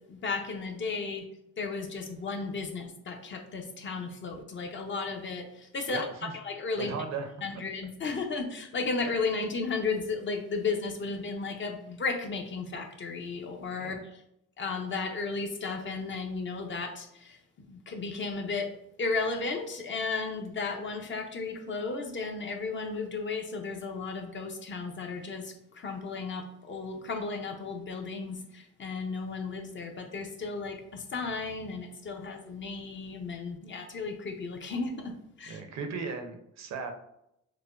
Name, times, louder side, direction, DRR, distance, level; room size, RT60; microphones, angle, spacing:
voice 1, 0.1-1.3 1.6-6.1 6.3-6.9 7.4-14.2 14.6-18.7 19.0-35.6, left 4 dB, 40° left, 4 dB, 0.6 m, -34 dB
voice 2, 5.9-6.3 6.8-7.3 8.0-8.1 13.8-13.9 35.5-36.9, right 5 dB, 60° right, 6 dB, 0.6 m, -36 dB
4.7 x 2.1 x 2.4 m, 0.79 s
cardioid pair, 90°, 30 cm